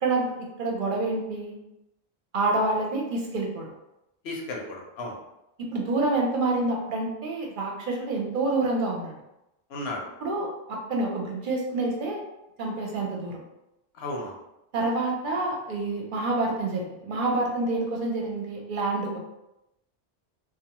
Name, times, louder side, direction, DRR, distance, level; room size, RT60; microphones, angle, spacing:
voice 1, 0.0-1.6 2.3-3.7 5.6-9.1 10.2-12.2 12.6-13.4 14.7-19.2, right 2 dB, 60° right, 0 dB, 0.7 m, -27 dB
voice 2, 4.2-5.2 9.7-10.1 14.0-14.4, left 2 dB, 80° left, -1 dB, 0.9 m, -34 dB
2.5 x 2.3 x 2.9 m, 0.90 s
omnidirectional pair, 1.0 m